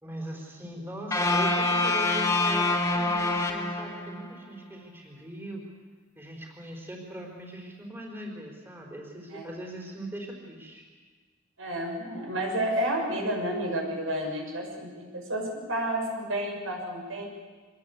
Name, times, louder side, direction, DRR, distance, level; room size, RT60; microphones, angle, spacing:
voice 1, 0.0-5.6 6.2-10.8, right 1 dB, 10° right, -1 dB, 4.4 m, -40 dB
sound 1, 1.1-4.3, left 2 dB, 15° left, 3.0 m, -26 dB
voice 2, 11.6-17.3, right 1 dB, 80° right, 1 dB, 7.3 m, -31 dB
25.0 x 20.5 x 8.5 m, 1.4 s
head